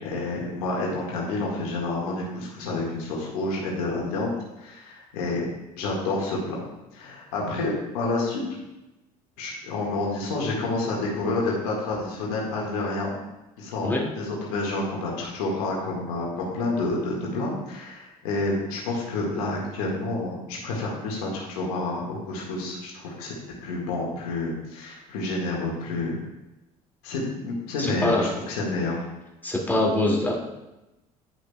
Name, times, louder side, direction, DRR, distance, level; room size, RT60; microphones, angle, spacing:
voice 1, 0.0-5.5 5.8-6.6 6.9-8.4 9.4-13.1 13.6-23.3 23.6-26.2 27.0-29.0, left 2 dB, 70° left, -3 dB, 1.8 m, -29 dB
voice 2, 27.8-28.3 28.6-28.7 29.4-30.3, left 1 dB, 10° left, -3 dB, 2.2 m, -24 dB
10.5 x 6.5 x 2.3 m, 0.99 s
hypercardioid pair, 60°, 19 cm